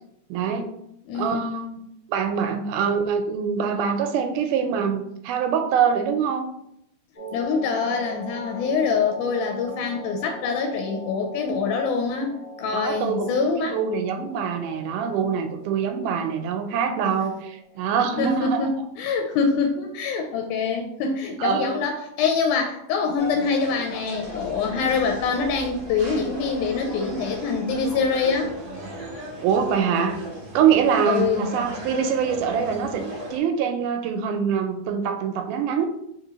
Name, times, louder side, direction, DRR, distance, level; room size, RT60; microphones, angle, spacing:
voice 1, 0.3-0.7 1.1-1.7 2.1-6.5 12.7-18.6 21.4-21.7 29.4-30.2 30.5-33.1 33.3-35.9, right 7 dB, 90° right, 6 dB, 2.1 m, -24 dB
voice 2, 1.1-1.8 2.8-3.0 7.3-12.3 12.6-13.8 18.2-28.5 31.1-31.5, left 5 dB, 85° left, 3 dB, 2.0 m, -25 dB
sound 1, 7.1-18.7, equal, 30° left, 1.2 m, -41 dB
sound 2, 23.2-33.4, equal, 70° right, 1.2 m, -37 dB
sound 3, 24.2-28.9, left 1 dB, 65° left, 1.7 m, -44 dB
4.3 x 3.6 x 2.9 m, 0.78 s
omnidirectional pair, 3.6 m